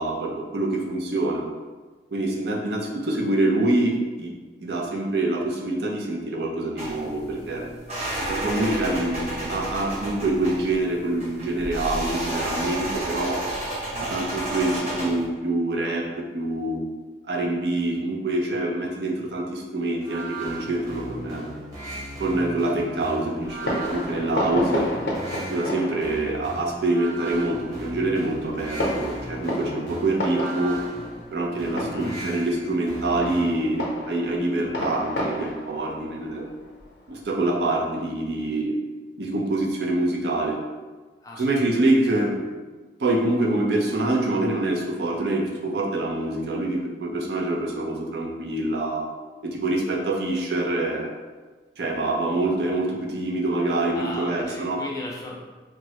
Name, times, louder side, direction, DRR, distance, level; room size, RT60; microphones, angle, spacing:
voice 1, 0.0-1.4 2.1-4.3 4.6-7.7 8.3-13.4 14.0-16.8 17.2-21.5 22.2-24.9 25.5-30.8 31.3-36.5 37.1-38.7 39.2-40.6 41.4-42.4 43.0-49.0 49.4-51.1 51.8-54.8, right 2 dB, 65° right, -1 dB, 0.5 m, -25 dB
sound 1, 6.8-15.2, right 1 dB, 40° right, 1.3 m, -31 dB
voice 2, 13.9-14.6 14.9-15.0 31.7-32.2 41.2-41.7 53.9-55.4, left 1 dB, 20° left, -2 dB, 0.4 m, -38 dB
sound 2, 20.0-33.8, right 1 dB, 20° right, 0.9 m, -37 dB
Fireworks, 23.4-37.6, left 1 dB, 75° left, 0.6 m, -32 dB
3.5 x 2.1 x 2.8 m, 1.3 s
head